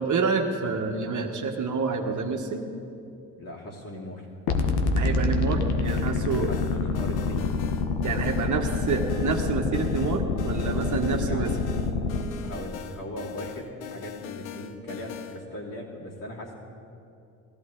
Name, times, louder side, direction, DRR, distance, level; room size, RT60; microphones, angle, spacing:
voice 1, 0.0-2.7 5.0-6.5 8.0-11.5, right 4 dB, 50° right, 3 dB, 1.4 m, -28 dB
voice 2, 3.3-4.3 6.5-7.5 11.0-11.6 12.3-16.5, left 1 dB, 55° left, -3 dB, 3.2 m, -39 dB
sound 1, 4.5-12.2, left 4 dB, 75° left, 1.2 m, -27 dB
sound 2, 5.8-15.4, left 8 dB, 90° left, 0.7 m, -40 dB
16.0 x 13.5 x 3.9 m, 2.6 s
hypercardioid pair, 55°, 39 cm